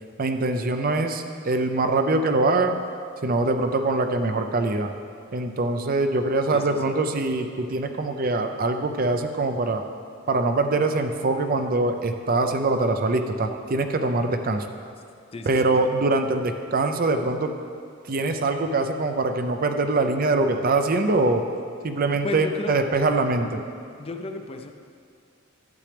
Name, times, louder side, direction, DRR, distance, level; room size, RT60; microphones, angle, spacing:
voice 1, 0.2-2.8 3.2-4.9 5.3-9.8 10.3-14.7 15.5-17.5 18.1-21.4 21.8-23.6, right 2 dB, 45° right, 6 dB, 0.5 m, -23 dB
voice 2, 6.5-6.9 15.3-15.7 22.2-22.8 24.0-24.7, left 2 dB, 30° left, 5 dB, 0.5 m, -33 dB
12.0 x 8.9 x 3.4 m, 2.3 s
head